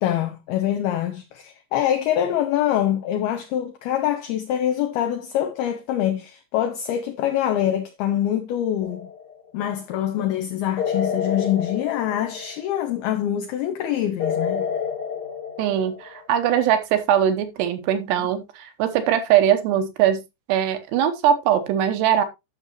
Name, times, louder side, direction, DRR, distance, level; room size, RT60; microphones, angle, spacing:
voice 1, 0.0-9.1 9.5-14.6 18.2-18.3, left 11 dB, 75° left, 2.5 m, -24 dB
sound 1, 8.8-9.4 10.8-12.8 14.2-16.3, left 7 dB, 40° left, 1.6 m, -29 dB
voice 2, 15.6-20.2 20.5-22.2, right 10 dB, 75° right, 3.0 m, -21 dB
12.0 x 6.4 x 3.0 m
omnidirectional pair, 5.2 m